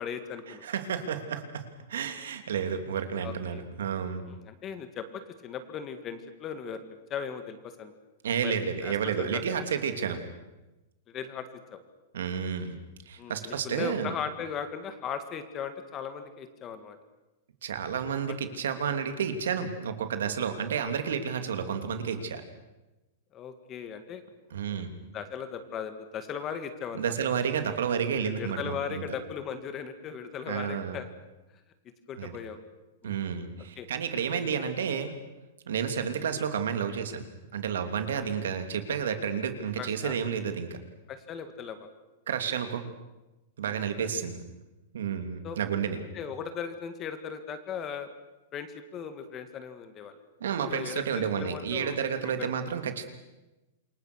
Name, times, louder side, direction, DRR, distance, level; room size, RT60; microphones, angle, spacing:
voice 1, 0.0-0.6 3.2-3.6 4.3-6.8 7.1-7.9 8.4-9.6 11.1-11.8 13.2-17.0 21.5-21.7 23.3-24.2 24.7-24.8 25.1-27.2 28.2-31.1 32.1-32.6 33.0-33.1 33.8-33.9 38.1-38.3 39.8-40.2 41.1-41.9 43.7-44.1 45.4-45.6 46.1-48.1 48.5-50.2 50.7-52.5, left 7 dB, 20° left, 9 dB, 1.8 m, -38 dB
voice 2, 0.6-1.6 1.9-4.2 8.2-10.2 12.1-12.8 13.1-14.1 17.6-22.4 24.5-24.9 26.9-29.0 30.5-31.0 32.2-32.4 33.0-35.1 35.7-37.2 37.5-40.8 42.3-42.8 43.6-44.4 44.9-46.0 50.4-53.1, right 7 dB, 90° right, 7 dB, 3.1 m, -31 dB
27.5 x 23.5 x 6.4 m, 1.0 s
supercardioid pair, 165°, 0 cm